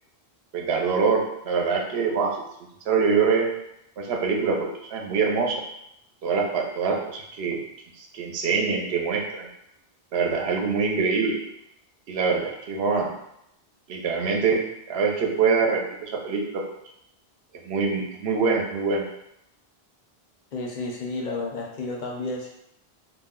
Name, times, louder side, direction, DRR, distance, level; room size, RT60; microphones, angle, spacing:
voice 1, 0.5-2.3 2.9-3.5 4.0-5.6 6.2-7.6 8.0-9.5 10.1-11.4 12.1-13.1 13.9-14.6 14.9-16.6 17.6-19.0, right 5 dB, 85° right, 0 dB, 0.8 m, -24 dB
voice 2, 20.5-22.5, left 2 dB, 60° left, -1 dB, 0.6 m, -31 dB
2.4 x 2.1 x 3.5 m, 0.79 s
omnidirectional pair, 1.0 m